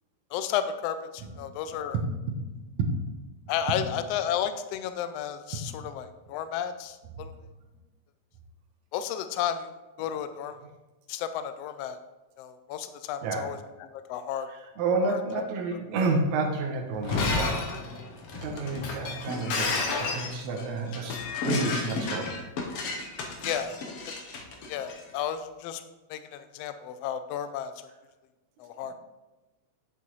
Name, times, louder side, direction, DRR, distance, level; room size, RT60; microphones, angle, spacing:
voice 1, 0.3-2.0 3.5-7.3 8.9-9.7 10.0-10.6 11.1-12.0 12.4-14.5 15.0-15.4 23.4-23.7 24.7-25.8 26.1-27.7 28.6-28.9, left 9 dB, 85° left, 10 dB, 1.4 m, -32 dB
voice 2, 1.2-1.6 1.9-2.4 2.8-3.0 3.7-3.8 5.5-5.7 13.2-13.5 14.5-17.6 18.4-22.3, right 3 dB, 75° right, 0 dB, 2.3 m, -30 dB
Shatter, 16.9-25.0, left 3 dB, 65° left, 1.9 m, -31 dB
8.3 x 7.3 x 3.1 m, 1.1 s
omnidirectional pair, 3.4 m